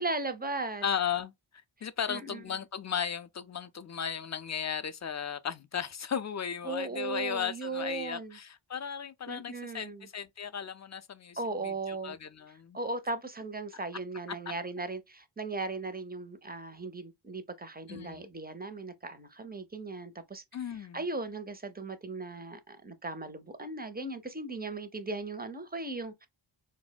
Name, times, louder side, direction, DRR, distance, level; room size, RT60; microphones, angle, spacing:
voice 1, 0.0-0.8 2.1-2.4 6.6-8.4 9.3-10.1 11.4-12.2 12.7-20.4 20.9-26.3, right 3 dB, 20° right, 0.4 m, -37 dB
voice 2, 0.8-1.3 1.8-12.8 17.9-18.2 20.5-21.0, left 8 dB, 35° left, 0.4 m, -36 dB
4.2 x 2.0 x 2.2 m
wide cardioid pair, 50°, 50 cm